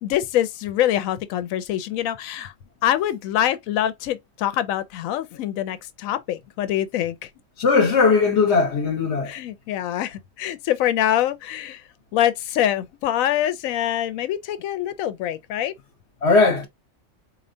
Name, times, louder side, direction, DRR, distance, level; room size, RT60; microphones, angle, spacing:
voice 1, 0.0-2.5 2.8-7.3 9.2-11.8 12.1-15.7, left 12 dB, 80° left, 1.0 m, -24 dB
voice 2, 7.6-9.3 16.2-16.7, left 4 dB, 55° left, 1.1 m, -18 dB
4.3 x 2.7 x 2.6 m
omnidirectional pair, 1.4 m